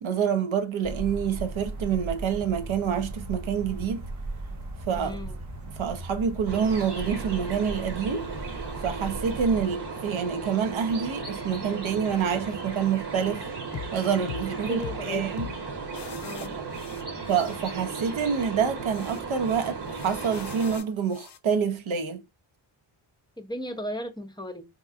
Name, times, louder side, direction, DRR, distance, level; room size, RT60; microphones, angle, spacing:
voice 1, 0.0-4.1 4.9-5.2 5.8-8.3 8.8-13.5 13.9-15.5 17.3-22.2, right 7 dB, 70° right, 0.8 m, -27 dB
sound 1, 0.8-9.6, right 2 dB, 35° right, 1.0 m, -37 dB
voice 2, 5.0-5.4 14.7-15.4 16.2-16.6 23.4-24.7, left 1 dB, 10° left, 0.6 m, -36 dB
sound 2, 6.5-20.8, right 4 dB, 55° right, 1.2 m, -36 dB
sound 3, 13.7-13.9 14.3-14.5 14.8-15.0 15.4-15.6 15.9-17.6 17.8-18.1 18.9-21.4, left 8 dB, 55° left, 0.6 m, -41 dB
3.7 x 2.9 x 2.4 m
wide cardioid pair, 80°, 49 cm